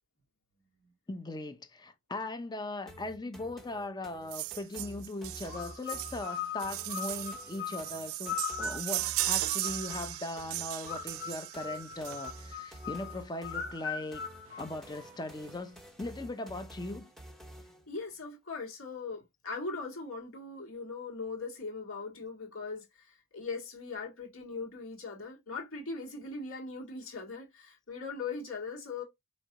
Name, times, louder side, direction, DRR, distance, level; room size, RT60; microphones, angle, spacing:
voice 1, 1.1-14.2 14.6-17.1, left 2 dB, 20° left, 0.5 m, -39 dB
sound 1, 2.9-17.9, right 1 dB, ahead, 0.9 m, -50 dB
sound 2, 4.3-12.6 13.7-13.8 14.1-14.2 14.5-14.6 15.0-15.6 16.0-16.1, right 18 dB, 75° right, 0.3 m, -37 dB
sound 3, 5.5-10.2 10.9-15.3, left 7 dB, 55° left, 1.2 m, -40 dB
voice 2, 17.6-29.0, left 4 dB, 75° left, 2.0 m, -40 dB
4.8 x 3.1 x 2.8 m
head